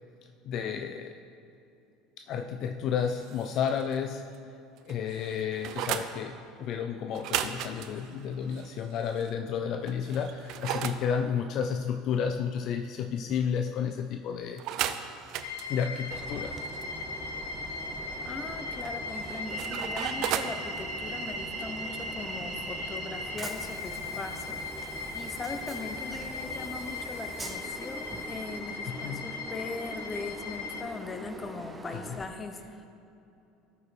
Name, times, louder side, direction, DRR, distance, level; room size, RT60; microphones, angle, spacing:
voice 1, 0.4-1.2 2.3-4.4 4.9-15.0 15.7-16.5 28.9-29.3 31.9-32.0, left 7 dB, 55° left, 6 dB, 0.4 m, -32 dB
sound 1, 3.1-4.0 4.3-4.4 4.8-6.1 7.1-9.3 9.9-11.0 14.6-16.8 18.8-20.6, right 10 dB, 60° right, 0.5 m, -36 dB
sound 2, 15.4-30.8, left 3 dB, 75° left, 0.9 m, -38 dB
Train, 16.1-32.3, right 3 dB, 15° right, 0.8 m, -42 dB
voice 2, 18.2-32.9, left 3 dB, 25° left, 7 dB, 0.9 m, -40 dB
13.0 x 5.2 x 4.5 m, 2.8 s
hypercardioid pair, 85°, 0 cm